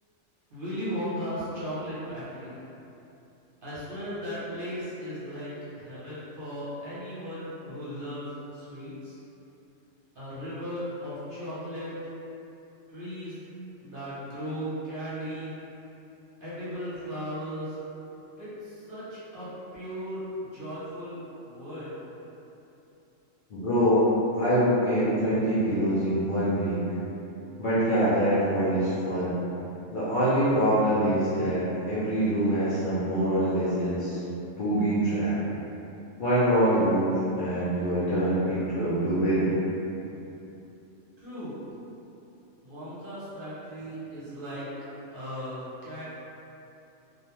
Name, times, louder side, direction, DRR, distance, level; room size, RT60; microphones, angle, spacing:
voice 1, 0.5-2.5 3.6-9.2 10.1-11.9 12.9-13.4 13.8-15.5 16.4-17.8 18.4-21.2 21.4-22.0 41.2-41.6 42.6-44.6 45.1-46.0, equal, 50° right, -11 dB, 0.8 m, -36 dB
voice 2, 23.5-26.9 27.6-29.4 29.9-31.6 31.9-34.2 34.6-35.4 36.2-39.6, equal, 55° left, -13 dB, 0.6 m, -24 dB
2.3 x 2.2 x 2.9 m, 2.9 s
omnidirectional pair, 1.3 m